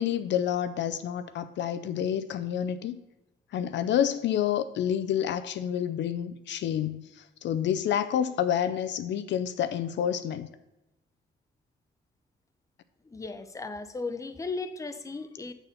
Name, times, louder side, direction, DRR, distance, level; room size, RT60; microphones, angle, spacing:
voice 1, 0.0-3.0 3.5-10.5, left 9 dB, 65° left, 0.5 m, -29 dB
voice 2, 13.0-15.5, left 3 dB, 15° left, 0.6 m, -36 dB
7.1 x 4.1 x 6.7 m
cardioid pair, 90°, 20 cm